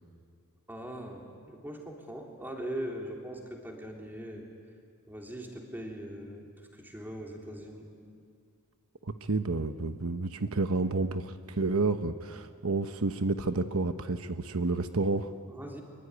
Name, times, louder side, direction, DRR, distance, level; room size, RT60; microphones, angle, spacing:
voice 1, 0.7-4.4 5.1-7.9 15.5-15.8, right 1 dB, 10° right, 0 dB, 3.5 m, -41 dB
voice 2, 9.2-15.3, right 3 dB, 75° right, 9 dB, 1.0 m, -30 dB
24.5 x 23.5 x 9.8 m, 2.3 s
head